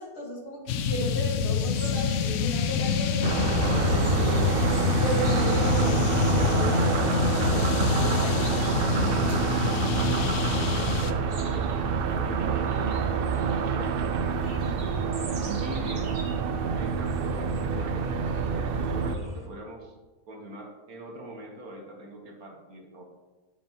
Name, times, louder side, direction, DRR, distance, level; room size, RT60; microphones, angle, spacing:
voice 1, 0.0-4.5 5.0-8.5 14.5-15.1, right 1 dB, 40° left, -2 dB, 2.0 m, -35 dB
sound 1, 0.7-11.1, left 8 dB, 70° left, 0.7 m, -26 dB
sound 2, 1.5-19.5, right 2 dB, 50° right, 1.6 m, -45 dB
sound 3, 3.2-19.2, right 6 dB, 80° right, 0.5 m, -27 dB
voice 2, 10.2-11.7 12.1-14.4 15.3-16.1 16.7-18.1 18.5-19.9 20.3-23.0, right 1 dB, 65° right, 1 dB, 1.7 m, -43 dB
10.0 x 7.6 x 2.9 m, 1.2 s
omnidirectional pair, 1.7 m